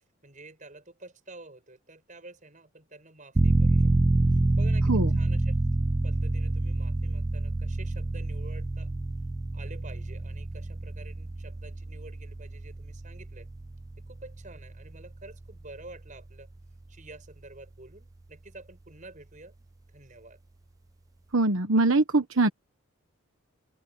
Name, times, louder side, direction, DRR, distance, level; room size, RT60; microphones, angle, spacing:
voice 1, 0.2-3.9 4.3-5.6 6.0-8.9 9.5-13.5 14.1-16.5 16.9-19.6 19.9-20.4, right 2 dB, 35° right, 6.8 m, -49 dB
sound 1, 3.4-15.9 16.2-16.3, right 2 dB, 15° right, 0.3 m, -27 dB
voice 2, 21.3-22.5, right 2 dB, 70° right, 1.2 m, -23 dB
open air
head